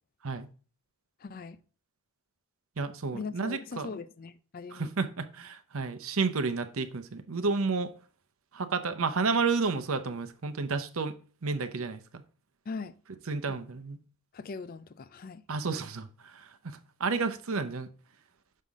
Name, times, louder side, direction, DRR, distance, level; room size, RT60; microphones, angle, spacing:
voice 1, 1.2-1.6 3.1-4.9 12.7-12.9 13.5-13.6 14.3-15.4, left 4 dB, 40° left, 0.4 m, -40 dB
voice 2, 2.8-3.9 4.7-7.9 8.5-11.1 11.4-12.2 13.3-14.0 15.5-17.9, right 4 dB, 70° right, 0.7 m, -31 dB
6.5 x 5.7 x 3.5 m
head